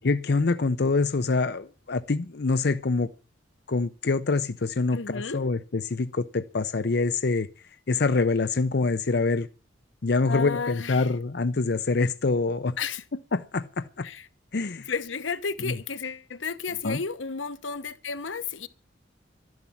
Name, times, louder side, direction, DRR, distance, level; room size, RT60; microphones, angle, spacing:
voice 1, 0.0-3.1 3.7-7.5 7.9-9.5 10.0-12.8 13.3-14.1 14.5-14.9 15.6-15.7 16.8-17.0, left 3 dB, 60° left, 0.6 m, -25 dB
voice 2, 4.9-5.4 10.3-11.1 12.8-13.0 14.0-14.3 14.9-18.7, left 5 dB, 85° left, 1.0 m, -32 dB
12.5 x 11.0 x 7.3 m
head